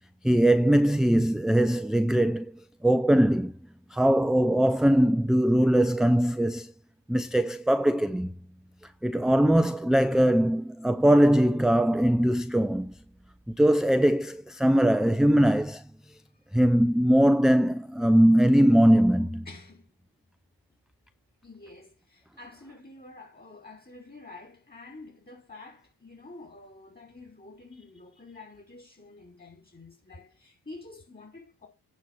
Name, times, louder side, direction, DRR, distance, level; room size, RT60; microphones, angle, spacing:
voice 1, 0.2-3.5 3.9-6.7 7.1-8.3 9.0-12.9 13.5-15.8 16.5-19.5, right 1 dB, ahead, 0.5 m, -21 dB
voice 2, 19.4-19.9 21.4-31.7, left 3 dB, 25° left, 4.9 m, -48 dB
9.6 x 6.0 x 5.9 m
cardioid pair, 75°, 40 cm